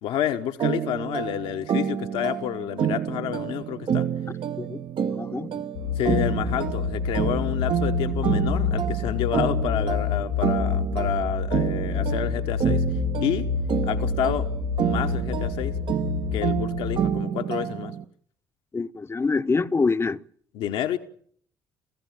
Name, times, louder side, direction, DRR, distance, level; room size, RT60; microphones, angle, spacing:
voice 1, 0.0-4.1 5.9-12.8 13.2-13.5 13.8-14.5 14.8-15.8 16.3-17.9 20.5-21.0, left 11 dB, 60° left, 1.1 m, -29 dB
sound 1, 0.6-18.0, right 8 dB, 50° right, 1.0 m, -29 dB
voice 2, 4.6-5.7 18.7-20.2, left 4 dB, 25° left, 0.9 m, -26 dB
sound 2, 5.8-17.0, left 5 dB, 85° left, 2.2 m, -28 dB
28.5 x 16.0 x 7.4 m
figure-of-eight pair, 45°, 11 cm